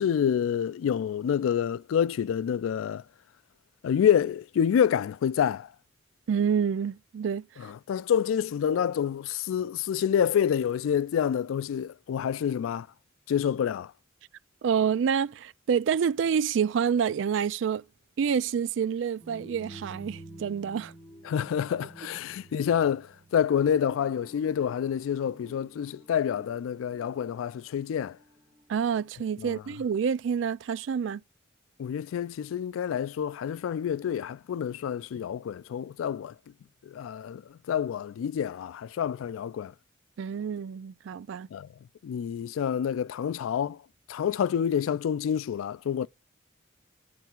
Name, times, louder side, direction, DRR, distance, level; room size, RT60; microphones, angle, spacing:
voice 1, 0.0-3.0 3.8-5.7 7.9-12.9 13.3-13.9 21.3-28.2 29.4-29.6 31.8-36.3 36.9-37.4 37.7-39.7 41.5-41.7 42.0-43.8 44.1-46.1, left 8 dB, 90° left, 0.3 m, -27 dB
voice 2, 6.3-7.7 14.6-17.8 18.2-20.9 28.7-31.2 40.2-41.5, right 7 dB, 65° right, 0.3 m, -28 dB
sound 1, 19.2-29.1, right 1 dB, 15° right, 1.6 m, -50 dB
9.1 x 3.4 x 4.4 m
head